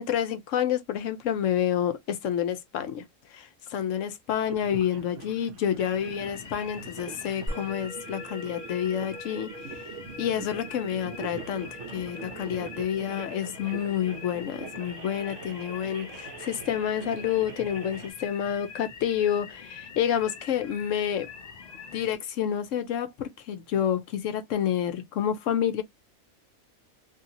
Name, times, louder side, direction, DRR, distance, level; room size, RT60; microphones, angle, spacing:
voice 1, 0.0-3.0 3.3-9.5 10.2-21.3 21.9-25.8, left 9 dB, 70° left, 0.9 m, -29 dB
sound 1, 4.4-18.1, right 6 dB, 70° right, 0.9 m, -43 dB
sound 2, 5.8-22.2, left 6 dB, 85° left, 0.3 m, -45 dB
Musical instrument, 7.5-18.1, equal, 35° right, 0.9 m, -45 dB
2.7 x 2.7 x 2.5 m
omnidirectional pair, 1.4 m